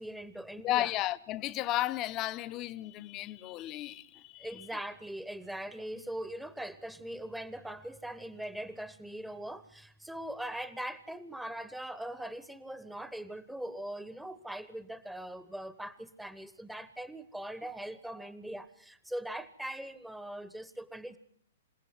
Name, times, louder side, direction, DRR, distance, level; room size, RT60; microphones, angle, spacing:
voice 1, 0.0-0.9 4.4-21.2, right 1 dB, 5° right, 0.9 m, -41 dB
voice 2, 0.6-4.7, left 15 dB, 30° left, 0.8 m, -34 dB
28.0 x 17.0 x 5.8 m
figure-of-eight pair, 110°, 0 cm